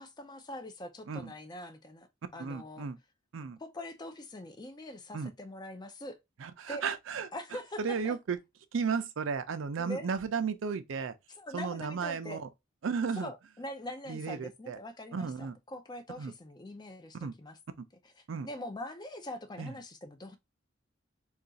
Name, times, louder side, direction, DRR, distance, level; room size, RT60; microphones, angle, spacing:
voice 1, 0.0-2.1 2.3-2.9 3.6-6.2 6.7-6.8 7.3-8.2 9.8-10.1 11.4-12.4 13.2-17.6 18.4-20.4, left 1 dB, 20° left, 0.4 m, -43 dB
voice 2, 2.4-3.0 3.3-3.6 5.1-5.3 6.4-7.3 7.8-8.4 8.7-11.2 11.5-12.5 12.8-13.3 14.1-14.8 15.1-15.6 16.2-16.3 17.1-17.3 18.3-18.5 19.6-19.7, right 5 dB, 80° right, 0.4 m, -34 dB
2.4 x 2.3 x 3.9 m
head